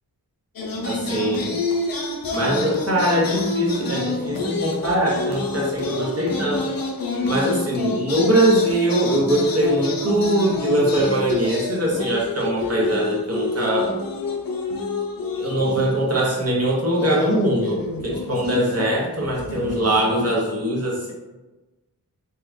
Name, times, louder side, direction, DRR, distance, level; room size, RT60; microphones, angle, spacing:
sound 1, 0.6-16.6 16.9-20.4, left 3 dB, 60° left, 0.6 m, -28 dB
voice 1, 0.8-1.6 2.3-6.7 7.2-14.0 15.4-21.1, right 1 dB, 40° right, -3 dB, 1.0 m, -22 dB
2.9 x 2.4 x 3.4 m, 1.1 s
wide cardioid pair, 60°, 40 cm